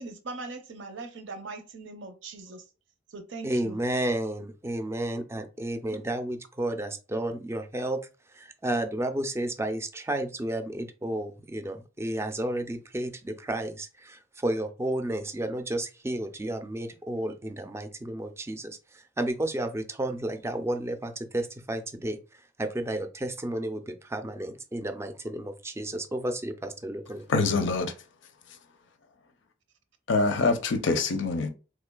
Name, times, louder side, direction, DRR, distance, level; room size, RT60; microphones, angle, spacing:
voice 1, 0.0-2.7 3.1-3.8, right 3 dB, 85° right, 0.6 m, -40 dB
voice 2, 3.4-8.0 8.6-13.9 14.4-18.8 19.2-22.2 22.6-27.2, right 1 dB, 15° right, 0.4 m, -31 dB
voice 3, 27.3-27.9 30.1-31.5, left 3 dB, 85° left, 0.6 m, -25 dB
3.6 x 3.1 x 2.2 m
head